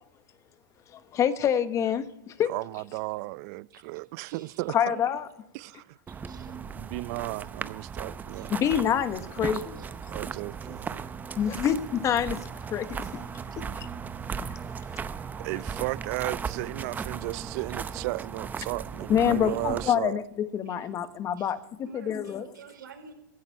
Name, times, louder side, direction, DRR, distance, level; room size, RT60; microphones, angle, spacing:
voice 1, 1.1-2.5 4.7-5.3 8.5-9.8 11.4-12.4 12.7-13.2 14.4-14.5 19.1-21.6 21.9-22.4, left 9 dB, 30° left, 1.2 m, -26 dB
voice 2, 2.5-5.0 5.5-5.8 6.8-8.5 10.1-11.1 15.4-20.2, right 22 dB, 50° right, 0.5 m, -34 dB
voice 3, 3.7-4.7 6.1-6.5 8.3-8.6 9.7-9.9 10.7-10.8 13.5-13.6 17.7-17.8 19.4-19.5 20.6-20.8 21.4-21.5 21.8-23.1, right 6 dB, 85° right, 5.0 m, -51 dB
sound 1, 6.1-19.9, right 6 dB, 15° right, 0.7 m, -37 dB
16.0 x 14.5 x 4.7 m
hypercardioid pair, 125°, 11 cm